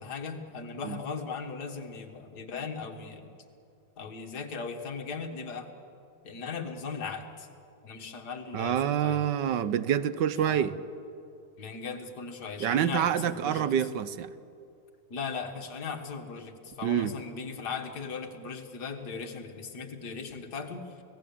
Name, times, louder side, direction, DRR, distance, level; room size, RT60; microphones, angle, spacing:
voice 1, 0.0-3.3 4.0-5.7 6.2-7.5 7.8-9.2 10.4-10.7 11.6-13.7 15.1-20.9, left 5 dB, 55° left, 4 dB, 2.3 m, -38 dB
voice 2, 8.5-10.8 12.6-14.3 16.8-17.1, right 9 dB, 70° right, 14 dB, 1.4 m, -27 dB
29.5 x 17.5 x 8.7 m, 2.6 s
omnidirectional pair, 2.1 m